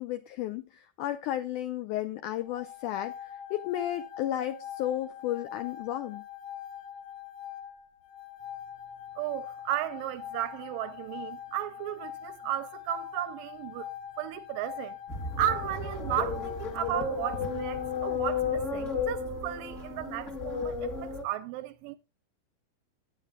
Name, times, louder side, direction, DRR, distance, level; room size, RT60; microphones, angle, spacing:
voice 1, 0.0-6.2, left 12 dB, 90° left, 1.7 m, -33 dB
sound 1, 2.4-18.2, left 10 dB, 65° left, 2.8 m, -43 dB
voice 2, 9.2-15.0 15.4-22.0, right 12 dB, 80° right, 2.1 m, -34 dB
sound 2, 15.1-21.2, left 5 dB, 35° left, 1.1 m, -33 dB
17.0 x 9.3 x 2.3 m
omnidirectional pair, 4.3 m